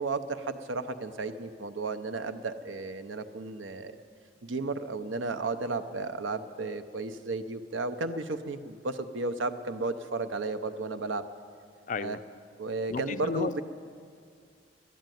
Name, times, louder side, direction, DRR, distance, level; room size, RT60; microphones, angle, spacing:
voice 1, 0.0-3.9 4.4-11.2 12.0-12.2 12.6-13.6, right 3 dB, 85° right, 10 dB, 0.7 m, -33 dB
voice 2, 11.9-12.2 12.9-13.6, left 4 dB, 40° left, 14 dB, 0.3 m, -33 dB
11.5 x 10.0 x 9.2 m, 2.2 s
head